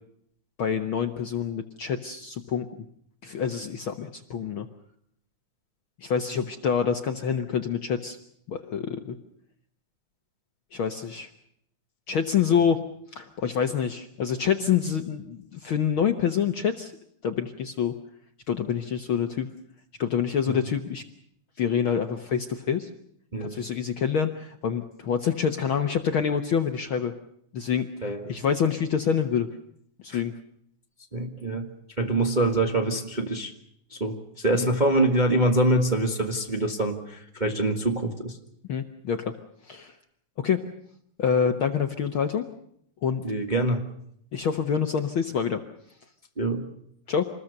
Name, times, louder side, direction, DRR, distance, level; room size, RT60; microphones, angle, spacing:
voice 1, 0.6-2.9 3.2-4.7 6.0-8.2 8.5-9.2 10.7-11.3 12.1-12.8 13.1-16.9 17.2-17.9 18.5-19.5 20.0-21.0 21.6-22.9 23.4-27.1 27.5-29.5 30.0-30.3 34.6-34.7 38.7-39.3 39.7-39.9 40.4-40.6 41.2-42.5 43.0-43.2 44.3-45.6 47.1-47.3, left 7 dB, 60° left, 6 dB, 1.5 m, -26 dB
voice 2, 28.0-28.3 30.1-30.2 31.1-31.7 32.0-33.5 33.9-38.4 43.2-43.8 46.4-46.7, right 1 dB, 20° right, 2 dB, 1.3 m, -25 dB
26.5 x 20.5 x 6.6 m, 0.70 s
omnidirectional pair, 3.4 m